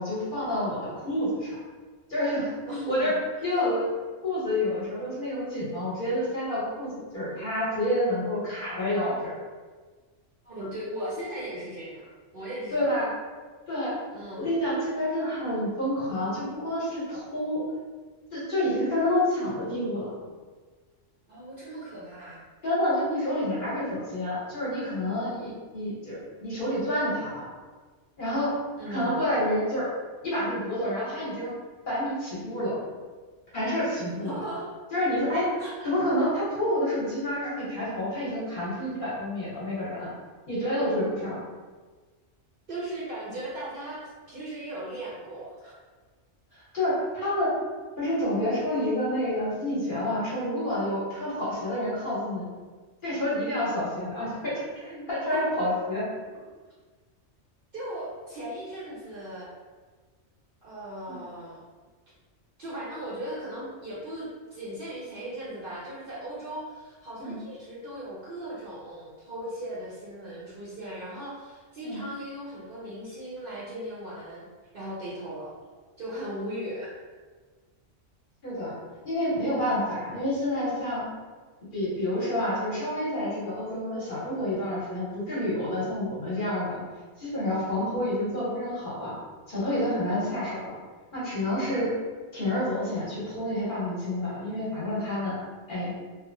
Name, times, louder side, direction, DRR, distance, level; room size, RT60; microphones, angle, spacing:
voice 1, 0.0-1.5 2.1-2.5 2.9-3.1 3.4-3.9 4.2-9.3 12.7-13.1 13.7-13.9 14.4-17.6 18.3-20.1 22.6-27.4 28.2-28.5 28.9-29.9 30.2-31.5 31.9-32.7 33.5-34.4 34.9-35.4 35.8-40.1 40.5-41.4 46.7-47.5 48.0-52.4 53.0-56.0 61.1-61.2 67.2-67.4 71.8-72.0 78.4-78.7 79.0-81.0 81.7-86.8 87.2-89.1 89.5-90.7 91.1-91.9 92.3-95.3 95.7-95.9, left 1 dB, 45° left, -9 dB, 1.0 m, -28 dB
voice 2, 2.7-3.1 3.5-3.6 10.4-12.9 14.1-14.5 21.3-22.4 28.8-29.2 34.2-34.7 35.6-35.9 42.7-45.7 54.9-55.4 57.7-59.5 60.6-61.6 62.6-74.4 74.7-75.5 76.0-77.0, right 1 dB, 55° right, -8 dB, 0.7 m, -38 dB
2.8 x 2.0 x 2.5 m, 1.4 s
omnidirectional pair, 1.3 m